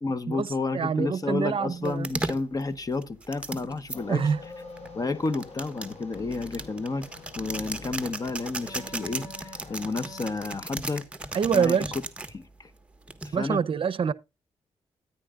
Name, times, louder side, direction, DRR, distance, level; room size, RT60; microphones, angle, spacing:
voice 1, 0.0-4.3 4.9-7.1 7.4-11.0 11.5-11.9 12.3-12.7 13.2-13.6, left 3 dB, 35° left, 1.1 m, -31 dB
voice 2, 0.7-2.1 4.1-4.4 11.3-11.9 13.3-14.1, right 6 dB, 50° right, 0.7 m, -25 dB
sound 1, 1.8-4.0 4.8-12.3 13.1-13.6, right 2 dB, 10° right, 1.4 m, -36 dB
sound 2, 3.9-10.4, left 4 dB, 80° left, 6.2 m, -45 dB
13.5 x 9.9 x 2.4 m
cardioid pair, 100°, 11 cm